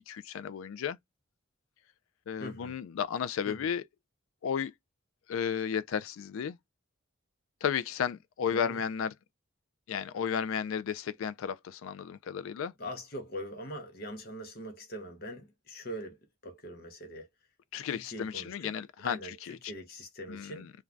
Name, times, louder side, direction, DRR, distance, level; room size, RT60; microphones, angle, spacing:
voice 1, 0.1-1.0 2.3-3.8 4.4-4.7 5.3-6.6 7.6-9.1 9.9-12.7 17.7-19.6 20.3-20.7, left 7 dB, 85° left, 0.3 m, -33 dB
voice 2, 2.4-2.7 3.5-3.7 8.5-8.8 12.8-17.3 17.9-18.7 19.0-20.7, equal, 45° left, 0.7 m, -42 dB
2.5 x 2.2 x 3.1 m
head